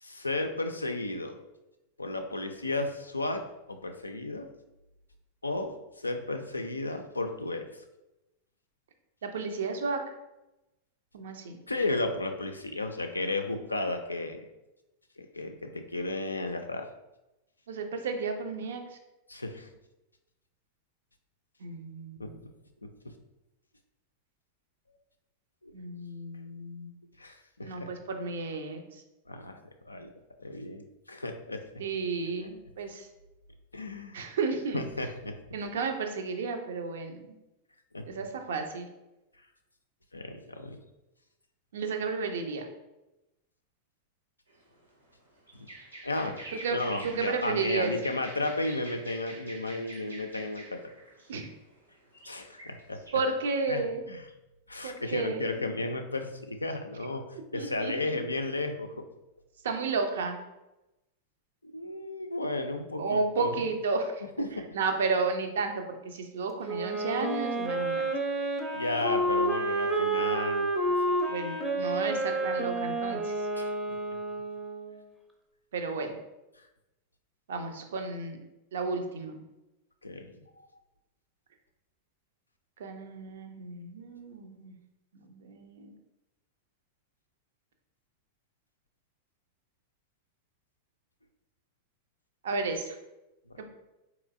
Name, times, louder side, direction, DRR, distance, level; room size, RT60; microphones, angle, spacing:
voice 1, 0.0-1.4 2.0-3.4 3.7-4.5 5.4-7.7 11.7-14.5 15.2-16.9 19.3-19.7 22.2-22.3 22.8-22.9 25.6-25.7 27.2-27.9 29.3-30.1 30.4-31.8 32.4-32.5 33.7-34.3 34.7-35.3 37.9-38.1 40.1-40.8 45.5-45.7 46.0-46.4 46.7-50.8 52.3-53.0 53.7-54.2 54.7-57.2 57.5-59.0 61.6-63.5 64.4-64.7 68.7-70.7 71.1-71.2 73.5-73.7 80.0-80.3 93.5-93.6, left 2 dB, 80° left, 6 dB, 0.3 m, -33 dB
voice 2, 9.2-10.0 11.1-11.6 17.7-18.9 21.6-22.4 25.7-26.9 27.6-28.8 31.8-33.1 34.1-34.8 35.5-37.4 38.1-38.9 41.7-42.7 46.5-46.8 47.0-47.9 51.3-51.5 53.1-54.0 54.8-55.5 57.5-57.9 59.6-60.4 63.0-64.5 64.7-68.0 71.3-73.3 75.7-76.2 77.5-78.4 78.7-79.4 82.8-84.7 85.1-85.9 92.4-93.0 93.6-93.7, right 4 dB, 60° right, 5 dB, 0.5 m, -32 dB
sound 1, 44.5-44.6 44.8-44.9 45.0-45.1 45.4-51.4 51.7-53.1, right 2 dB, 85° right, 0.9 m, -46 dB
Wind instrument woodwind instrument, 66.6-75.0, right 2 dB, 10° right, 0.5 m, -30 dB
3.8 x 2.9 x 2.5 m, 0.96 s
figure-of-eight pair, 90°, 0 cm